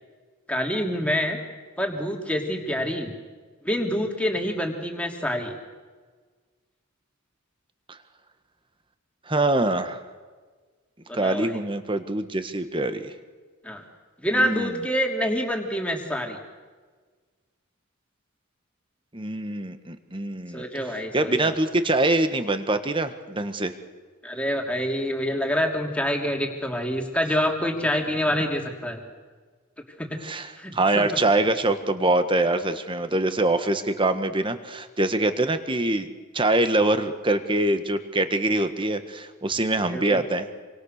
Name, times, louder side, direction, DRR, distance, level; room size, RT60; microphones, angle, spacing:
voice 1, 0.5-1.4 1.8-3.1 3.6-5.5 11.1-11.6 13.6-13.8 14.2-16.4 20.5-21.5 24.2-29.0 30.0-30.2 30.6-31.1 39.9-40.2, equal, 5° left, 2 dB, 3.1 m, -26 dB
voice 2, 9.3-10.0 11.1-13.1 14.3-14.7 19.1-20.6 21.1-23.7 30.2-36.1 36.3-40.5, right 2 dB, 25° right, 9 dB, 1.6 m, -24 dB
27.5 x 25.5 x 6.7 m, 1.4 s
head